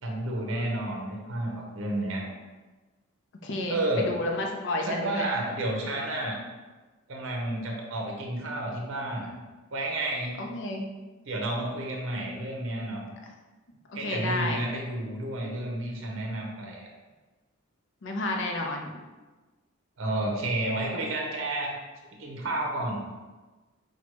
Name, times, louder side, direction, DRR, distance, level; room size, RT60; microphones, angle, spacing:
voice 1, 0.0-2.2 3.7-4.1 4.9-6.4 7.1-9.3 9.7-10.3 11.3-13.0 13.9-16.9 20.0-21.8 22.2-23.0, right 1 dB, 65° right, 0 dB, 0.7 m, -31 dB
voice 2, 3.4-5.3 10.4-10.8 13.9-14.6 18.0-18.9, left 2 dB, 60° left, 1 dB, 0.5 m, -31 dB
5.9 x 2.2 x 3.0 m, 1.2 s
head